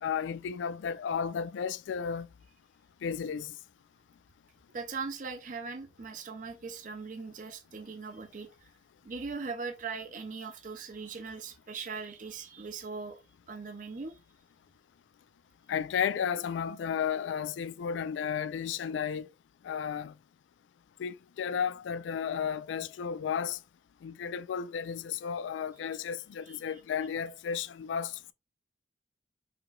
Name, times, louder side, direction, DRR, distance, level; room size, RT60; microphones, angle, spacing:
voice 1, 0.0-2.3 3.0-3.5 15.7-19.3 19.6-20.1 21.0-23.6 24.0-28.3, left 7 dB, 90° left, 0.3 m, -33 dB
voice 2, 4.7-8.5 9.0-13.2 13.5-14.2 26.5-26.6, right 4 dB, 45° right, 0.5 m, -40 dB
4.9 x 3.0 x 2.3 m
head